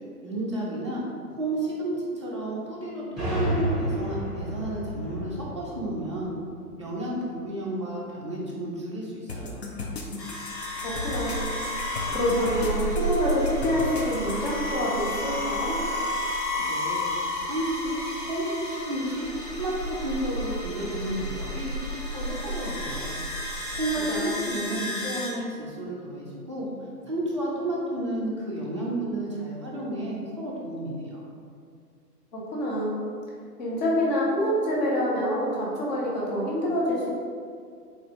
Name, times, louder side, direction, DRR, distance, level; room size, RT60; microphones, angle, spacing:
voice 1, 0.2-1.0 1.4-6.3 6.8-9.6 16.5-17.0 17.4-23.2 23.7-26.7 27.0-31.2, right 1 dB, 20° right, -6 dB, 0.5 m, -32 dB
sound 1, 3.2-6.8, right 1 dB, ahead, 0.9 m, -31 dB
sound 2, 9.3-14.5, left 3 dB, 45° left, 0.5 m, -36 dB
sound 3, 10.2-25.3, left 1 dB, 90° left, 1.0 m, -31 dB
voice 2, 10.8-11.4 12.1-15.8 24.1-24.3 32.3-33.0 33.6-37.1, equal, 25° left, -5 dB, 0.8 m, -26 dB
4.1 x 3.9 x 3.0 m, 2.2 s
figure-of-eight pair, 125°, 47 cm